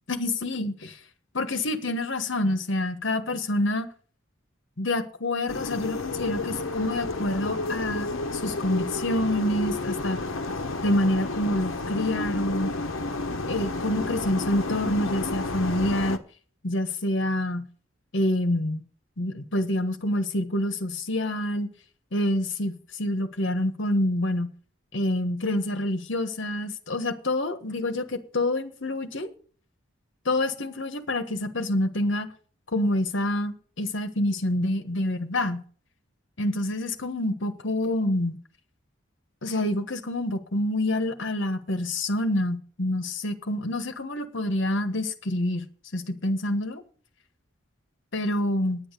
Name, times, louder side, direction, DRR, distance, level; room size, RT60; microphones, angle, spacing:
voice 1, 0.1-1.0 1.3-3.9 4.8-10.2 10.8-12.7 13.5-16.2 16.6-17.6 18.1-18.8 19.2-21.7 22.1-24.5 24.9-29.3 30.2-32.3 32.7-35.6 36.4-38.4 39.4-45.6 45.9-46.8 48.1-48.8, left 1 dB, 65° left, 1.3 m, -27 dB
sound 1, 5.5-16.2, left 3 dB, 80° left, 1.0 m, -31 dB
9.8 x 8.8 x 6.6 m
head